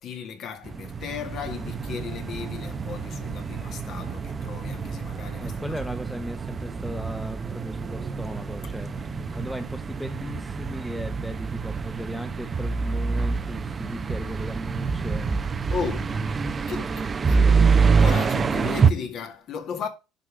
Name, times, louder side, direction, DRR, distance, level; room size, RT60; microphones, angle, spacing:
voice 1, 0.0-5.6 9.3-9.4 15.7-16.2 16.7-16.9 17.3-17.4 18.0-19.9, left 6 dB, 45° left, 2.1 m, -35 dB
sound 1, 0.7-18.9, right 5 dB, 25° right, 0.7 m, -26 dB
voice 2, 5.4-8.9 9.4-15.4 16.1-16.2 16.5-17.7, equal, ahead, 1.1 m, -37 dB
10.5 x 5.2 x 5.1 m
cardioid pair, 130°, 0 cm